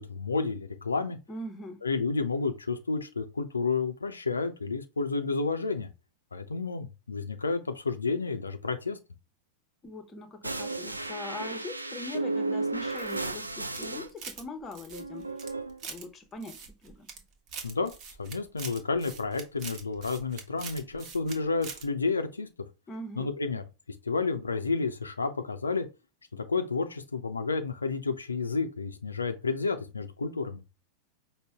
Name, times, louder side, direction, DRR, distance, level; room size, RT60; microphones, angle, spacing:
voice 1, 0.0-1.2 1.8-5.9 6.3-9.0 17.6-17.9 18.2-22.5 23.2-25.9 26.3-30.6, left 4 dB, 75° left, 0.5 m, -31 dB
voice 2, 1.3-1.8 9.8-15.4 15.8-17.1 22.9-23.3, left 2 dB, 20° left, 0.8 m, -42 dB
sound 1, 10.4-14.1 14.9-15.8, right 2 dB, 85° right, 0.4 m, -34 dB
sound 2, 12.9-14.4 14.7-16.0 16.4-17.2 17.5-21.4 21.6-21.8, right 5 dB, 35° right, 1.0 m, -43 dB
5.2 x 2.1 x 3.4 m
figure-of-eight pair, 90°, 0 cm